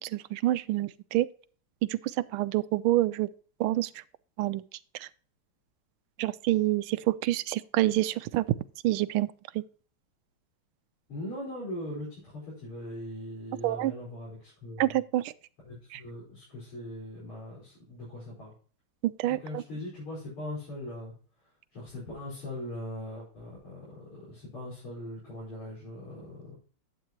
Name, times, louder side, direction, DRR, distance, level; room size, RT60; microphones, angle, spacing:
voice 1, 0.0-1.3 1.8-3.3 3.6-4.0 4.4-4.6 4.9-5.1 6.2-8.5 8.8-9.3 9.5-9.6 13.6-13.9 14.8-15.3 15.9-16.0 19.0-19.6, right 15 dB, 80° right, 1.4 m, -27 dB
voice 2, 11.1-15.0 15.6-18.5 19.3-21.1 21.7-26.6, left 1 dB, 90° left, 6.2 m, -40 dB
11.0 x 8.3 x 3.0 m
omnidirectional pair, 2.4 m